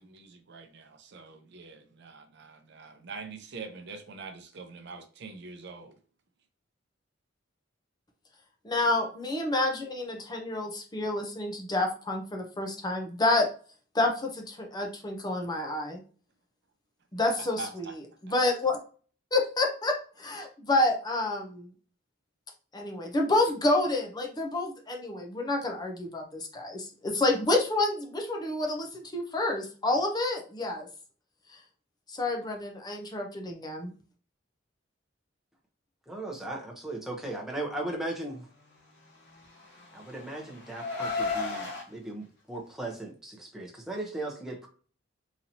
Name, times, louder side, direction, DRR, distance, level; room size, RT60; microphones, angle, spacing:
voice 1, 0.0-5.9 17.2-17.9 18.3-18.4, right 4 dB, 60° right, 0.6 m, -44 dB
voice 2, 8.6-13.5 13.9-16.0 17.1-17.9 18.3-18.8 19.3-21.7 22.7-30.9 32.1-33.9, left 2 dB, 20° left, 0.6 m, -29 dB
voice 3, 36.1-38.5 39.9-44.7, right 2 dB, ahead, 0.9 m, -37 dB
Car, 39.3-41.8, left 4 dB, 65° left, 1.3 m, -34 dB
4.0 x 2.9 x 2.8 m
head